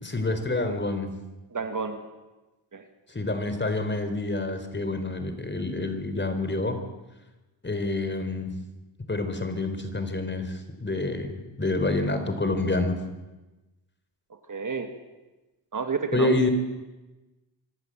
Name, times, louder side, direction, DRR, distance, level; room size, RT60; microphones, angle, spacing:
voice 1, 0.0-1.1 3.1-6.8 7.6-8.5 9.1-13.0 16.1-16.5, left 2 dB, 25° left, 8 dB, 4.0 m, -27 dB
voice 2, 1.5-2.0 2.7-2.8 14.3-14.9 15.7-16.4, right 5 dB, 40° right, 6 dB, 2.4 m, -30 dB
25.0 x 14.5 x 7.8 m, 1.1 s
cardioid pair, 65°, 46 cm